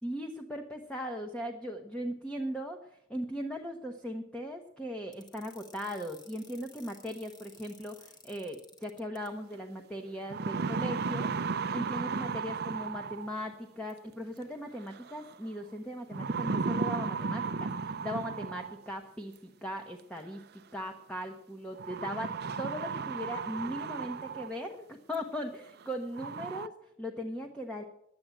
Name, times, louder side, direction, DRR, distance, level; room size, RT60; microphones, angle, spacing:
voice 1, 0.0-11.3 11.7-20.4 20.7-27.8, equal, 5° left, 3 dB, 0.9 m, -39 dB
sound 1, 5.1-9.3, left 2 dB, 20° left, 1.6 m, -55 dB
sound 2, 9.5-9.6 10.1-13.5 14.9-15.3 16.1-18.9 20.2-20.3 21.8-24.7 25.1-25.2 25.8-25.9 26.1-26.7, right 4 dB, 50° right, 0.5 m, -34 dB
11.5 x 8.7 x 8.9 m, 0.76 s
head